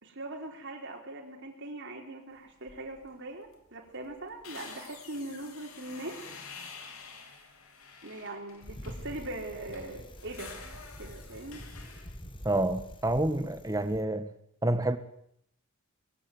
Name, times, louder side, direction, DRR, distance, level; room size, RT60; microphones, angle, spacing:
voice 1, 0.0-6.2 8.0-10.5 11.0-11.6, right 2 dB, 55° right, 4.1 m, -41 dB
sound 1, 2.7-3.1 3.4-3.6 3.9-9.1 9.5-12.2, left 5 dB, 75° left, 3.8 m, -49 dB
Bicycle, 8.6-14.0, equal, 20° left, 2.0 m, -46 dB
voice 2, 12.4-14.3 14.6-15.0, right 1 dB, 15° right, 1.4 m, -28 dB
21.5 x 15.0 x 9.4 m
head